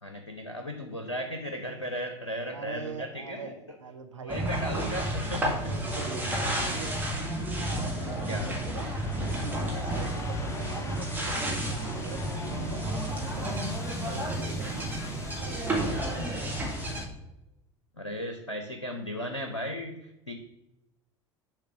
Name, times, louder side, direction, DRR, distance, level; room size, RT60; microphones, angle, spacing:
voice 1, 0.0-3.6 4.2-5.7 6.6-6.8 8.3-8.5 18.0-20.3, equal, 90° left, 4 dB, 0.6 m, -36 dB
voice 2, 2.5-4.8 5.7-7.0 7.6-9.0 9.4-13.6 14.1-14.9 15.4-16.6, right 4 dB, 80° right, 4 dB, 0.8 m, -42 dB
sound 1, 4.3-17.1, right 1 dB, 10° right, 1.7 m, -31 dB
sound 2, 4.7-17.1, left 3 dB, 20° left, 0.8 m, -47 dB
6.6 x 3.3 x 5.9 m, 0.89 s
figure-of-eight pair, 70°, 15 cm